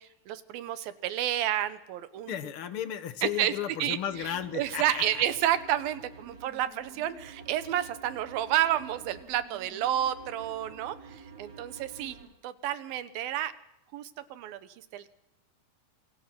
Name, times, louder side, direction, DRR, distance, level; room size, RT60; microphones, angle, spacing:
voice 1, 0.0-2.4 3.2-3.5 3.8-4.0 4.5-12.2 12.4-13.5 13.9-15.1, right 12 dB, 90° right, 12 dB, 3.0 m, -30 dB
voice 2, 2.3-5.2, left 10 dB, 70° left, 11 dB, 1.3 m, -34 dB
sound 1, 4.1-12.3, right 5 dB, 45° right, 4.1 m, -49 dB
27.5 x 23.5 x 5.9 m, 0.85 s
omnidirectional pair, 4.1 m